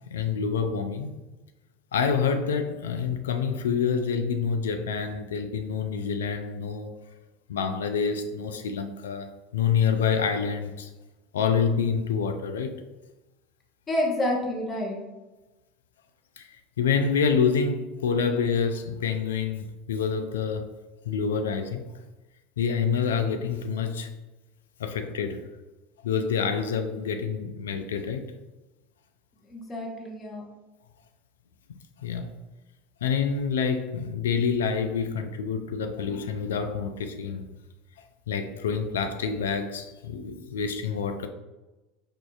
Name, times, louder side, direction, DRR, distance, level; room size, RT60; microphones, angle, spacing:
voice 1, 0.1-1.1 1.9-6.9 7.5-10.9 11.3-12.8 16.4-20.7 21.1-21.8 22.6-24.1 24.8-25.4 26.0-28.2 32.0-32.3 33.0-37.5 38.3-41.3, left 6 dB, 75° left, 0.3 m, -27 dB
voice 2, 13.9-15.0 29.4-30.4, left 1 dB, 25° left, 0.9 m, -29 dB
4.4 x 2.5 x 2.3 m
figure-of-eight pair, 75°, 0 cm